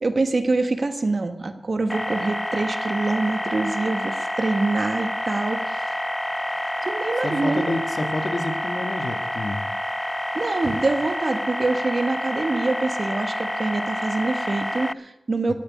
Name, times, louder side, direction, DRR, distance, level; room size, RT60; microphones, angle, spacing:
voice 1, 0.0-5.8 6.8-7.8 10.3-15.5, right 3 dB, 50° right, 7 dB, 1.3 m, -25 dB
sound 1, 1.9-14.9, left 1 dB, 10° left, 0.4 m, -28 dB
voice 2, 7.2-9.6 15.5-15.6, left 2 dB, 60° left, 5 dB, 1.8 m, -29 dB
13.5 x 6.1 x 9.8 m, 0.88 s
wide cardioid pair, 65°, 0 cm